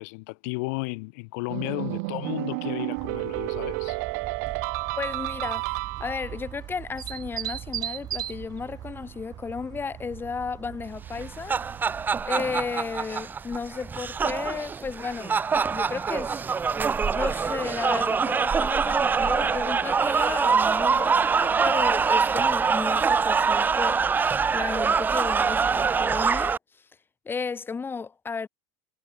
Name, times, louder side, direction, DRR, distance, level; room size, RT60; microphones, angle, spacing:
voice 1, 0.0-4.0, left 29 dB, 70° left, 1.4 m, -33 dB
sound 1, 1.5-6.4, right 30 dB, 70° right, 0.9 m, -31 dB
sound 2, 3.0-12.2, right 11 dB, 45° right, 1.8 m, -39 dB
voice 2, 5.0-11.6 12.2-15.4 15.7-16.4 17.1-24.0 24.5-26.6 27.3-28.5, left 5 dB, 25° left, 2.2 m, -33 dB
sound 3, 11.1-26.6, right 5 dB, 20° right, 0.4 m, -24 dB
hypercardioid pair, 85°, 9 cm